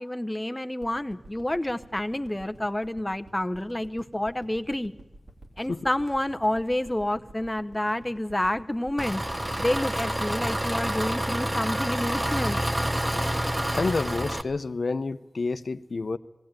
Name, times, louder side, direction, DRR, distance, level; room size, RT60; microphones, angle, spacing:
voice 1, 0.0-4.9 5.6-9.2 9.6-12.6, left 1 dB, 20° left, 9 dB, 0.8 m, -29 dB
sound 1, 0.8-13.1 13.5-13.6, right 2 dB, 65° right, 3.1 m, -50 dB
Engine, 9.0-14.4, right 1 dB, 20° right, 1.0 m, -28 dB
voice 2, 13.7-16.2, left 3 dB, 70° left, 13 dB, 0.7 m, -29 dB
18.5 x 16.5 x 8.9 m, 1.0 s
cardioid pair, 40°, 0 cm